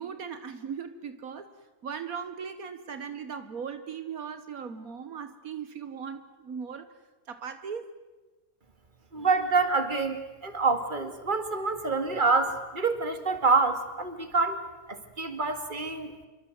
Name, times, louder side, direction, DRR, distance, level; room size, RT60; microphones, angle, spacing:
voice 1, 0.0-1.5 1.8-6.9 7.3-7.9 9.2-9.3, right 6 dB, 75° right, 10 dB, 1.7 m, -38 dB
voice 2, 9.1-14.6 14.9-16.1, right 4 dB, 35° right, 8 dB, 2.3 m, -27 dB
27.5 x 24.0 x 7.9 m, 1.2 s
omnidirectional pair, 1.5 m